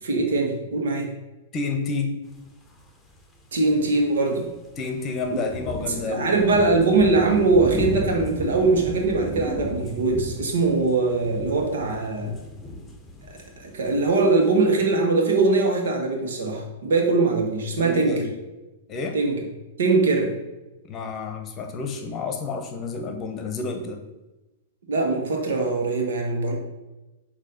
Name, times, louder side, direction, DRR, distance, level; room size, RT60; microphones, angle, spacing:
voice 1, 0.0-1.1 3.5-4.5 5.3-5.4 5.9-12.3 13.6-18.2 19.1-19.4 19.8-20.3 24.9-26.6, right 3 dB, 70° right, 2 dB, 1.3 m, -22 dB
voice 2, 1.5-2.2 4.8-6.5 17.8-18.3 18.9-19.2 20.9-24.0, left 4 dB, 30° left, 4 dB, 1.0 m, -30 dB
sound 1, 3.1-3.4 3.9-4.0 4.3-4.7 5.1-14.8, left 1 dB, 10° left, 1.0 m, -34 dB
6.4 x 2.9 x 5.4 m, 1.0 s
hypercardioid pair, 105°, 0 cm